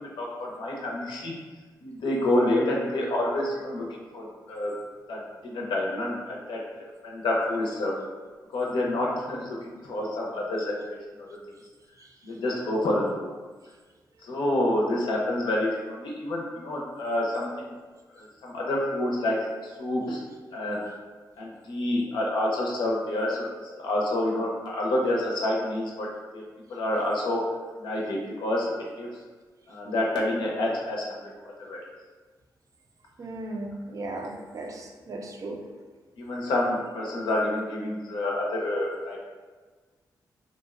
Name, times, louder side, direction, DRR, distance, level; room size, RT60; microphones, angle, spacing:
voice 1, 0.2-1.3 1.8-3.9 4.1-4.7 5.1-7.9 8.5-11.4 12.2-13.3 14.2-17.7 18.1-19.4 19.8-20.2 20.5-20.8 21.4-23.4 23.8-26.1 26.3-26.4 26.7-27.4 27.8-29.1 29.7-31.2 31.4-31.8 36.2-39.2, left 1 dB, 90° left, -3 dB, 0.5 m, -28 dB
voice 2, 33.2-35.6, right 2 dB, 45° right, 2 dB, 0.4 m, -36 dB
2.6 x 2.0 x 2.3 m, 1.4 s
cardioid pair, 75°, 8 cm